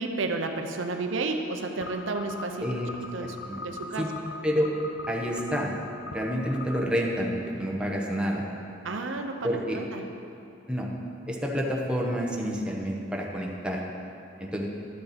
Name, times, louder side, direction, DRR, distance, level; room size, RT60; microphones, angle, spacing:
voice 1, 0.0-2.7 3.1-4.1 8.8-10.1, right 3 dB, 80° right, 4 dB, 0.7 m, -32 dB
sound 1, 1.8-6.8, left 3 dB, 65° left, 0.6 m, -41 dB
voice 2, 3.2-3.6 4.0-4.1 4.4-4.7 5.1-5.7 6.0-8.4 9.4-9.8 10.7-10.9 11.3-13.8 14.4-14.7, equal, 5° right, -2 dB, 0.9 m, -29 dB
11.5 x 6.6 x 4.2 m, 2.7 s
head